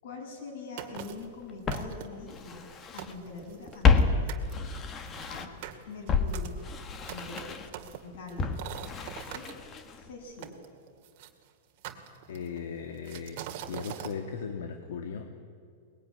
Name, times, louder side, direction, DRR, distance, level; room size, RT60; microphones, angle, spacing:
voice 1, 0.0-2.7 2.9-4.3 5.3-5.5 5.9-6.6 7.1-7.5 8.0-8.6 9.1-9.5 9.9-10.6, left 3 dB, 55° left, 2 dB, 7.5 m, -43 dB
sound 1, 0.8-1.3 1.7-2.3 2.7-2.8 3.0-4.0 4.3-4.5 5.1-9.5 10.4-11.3 11.8-12.6 13.1-14.2, right 11 dB, 45° right, 2.1 m, -42 dB
Walk footsteps, 0.9-1.0 1.7-3.1 3.4-5.7 6.1-10.1 10.4-10.5, left 5 dB, 20° left, 1.4 m, -29 dB
voice 2, 12.3-15.3, left 6 dB, 75° left, 5 dB, 2.1 m, -37 dB
23.0 x 20.5 x 9.7 m, 2.3 s
supercardioid pair, 170°, 0 cm